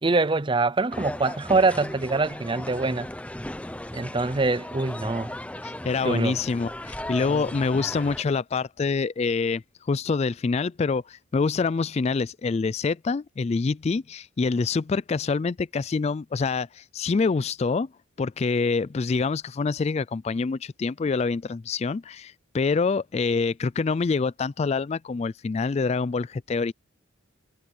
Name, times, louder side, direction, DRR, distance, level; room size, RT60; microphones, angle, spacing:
voice 1, 0.0-3.1 3.9-5.3 6.0-6.4 7.3-7.4, right 3 dB, 25° right, 0.5 m, -24 dB
sound 1, 0.9-8.2, left 1 dB, 5° left, 0.8 m, -36 dB
voice 2, 5.6-17.9 18.2-26.7, left 4 dB, 35° left, 0.3 m, -26 dB
head